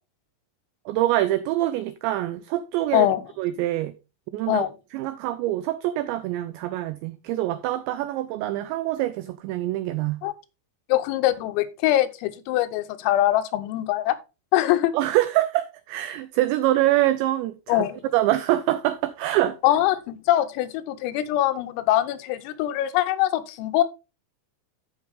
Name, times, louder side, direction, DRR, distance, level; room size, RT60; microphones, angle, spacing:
voice 1, 0.9-3.1 3.4-3.9 4.3-4.7 4.9-10.2 14.9-19.6, right 15 dB, 90° right, 2.5 m, -25 dB
voice 2, 10.9-14.2 14.5-14.9 17.7-18.0 19.6-23.8, left 14 dB, 90° left, 3.5 m, -23 dB
14.0 x 5.6 x 3.5 m
omnidirectional pair, 5.8 m